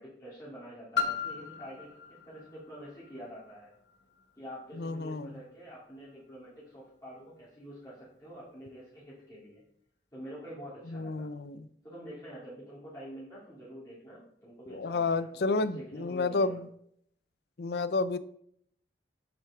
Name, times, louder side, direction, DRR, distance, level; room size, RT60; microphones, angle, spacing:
voice 1, 0.0-3.7 4.4-9.6 10.1-11.3 11.8-16.6, equal, 20° left, -9 dB, 2.3 m, -47 dB
Piano, 0.9-6.4 7.1-7.2, left 6 dB, 80° left, 1.0 m, -38 dB
voice 2, 4.8-5.3 10.9-11.7 14.7-16.7 17.6-18.2, left 3 dB, 65° left, 14 dB, 0.5 m, -30 dB
7.9 x 7.5 x 3.6 m, 0.68 s
head